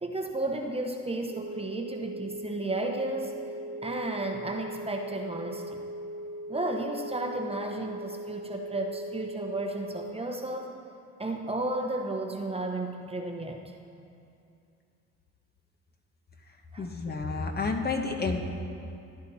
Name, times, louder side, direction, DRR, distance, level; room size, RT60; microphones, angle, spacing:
voice 1, 0.0-3.4 3.8-5.8 6.5-10.7 11.2-13.6 16.7-16.9, right 2 dB, 20° right, 3 dB, 1.0 m, -33 dB
sound 1, 1.3-10.2, right 1 dB, 35° right, 0.7 m, -39 dB
voice 2, 16.8-18.4, left 4 dB, 30° left, 3 dB, 1.3 m, -30 dB
15.5 x 10.5 x 4.3 m, 2.6 s
cardioid pair, 90°, 30 cm